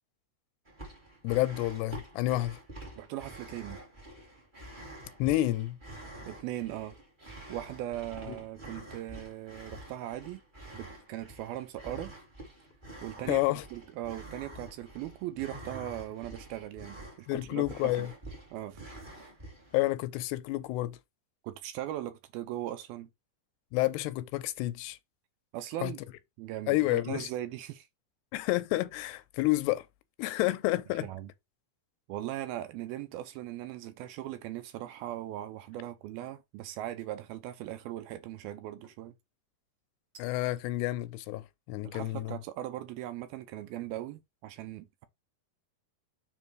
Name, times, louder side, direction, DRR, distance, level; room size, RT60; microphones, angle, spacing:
sound 1, 0.6-19.9, right 1 dB, 15° right, 1.6 m, -47 dB
voice 1, 1.2-2.6 5.2-5.8 8.3-8.4 13.3-13.6 17.3-18.1 19.7-21.0 23.7-25.0 25.8-25.9 26.7-27.3 28.3-29.9 30.2-31.1 40.2-42.3, left 17 dB, 85° left, 2.7 m, -29 dB
voice 2, 3.0-3.8 6.3-7.0 7.5-10.4 10.7-12.1 13.0-18.1 18.5-18.8 21.4-23.1 25.5-26.0 26.4-27.9 31.0-31.3 32.1-39.1 41.8-45.1, right 13 dB, 75° right, 2.4 m, -39 dB
bottle cap open, 34.0-34.3 34.8-35.2 37.0-37.5 38.8-39.2 40.1-40.6, right 4 dB, 45° right, 2.3 m, -60 dB
7.6 x 3.5 x 4.6 m
omnidirectional pair, 4.8 m